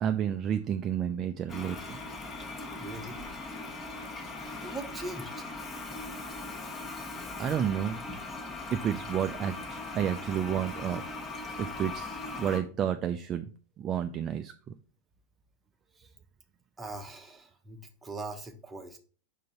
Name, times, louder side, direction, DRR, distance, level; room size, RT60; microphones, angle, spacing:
voice 1, 0.0-2.0 7.4-8.0 8.7-11.0 11.6-13.5 13.8-14.7, right 9 dB, 30° right, 8 dB, 0.4 m, -31 dB
Toilet flush, 1.5-12.6, left 3 dB, 20° left, 1.1 m, -39 dB
voice 2, 2.6-3.3 4.6-5.5 16.0-16.1 16.8-19.0, right 2 dB, 10° right, 4 dB, 1.0 m, -41 dB
5.5 x 3.9 x 5.5 m, 0.40 s
figure-of-eight pair, 90°, 0 cm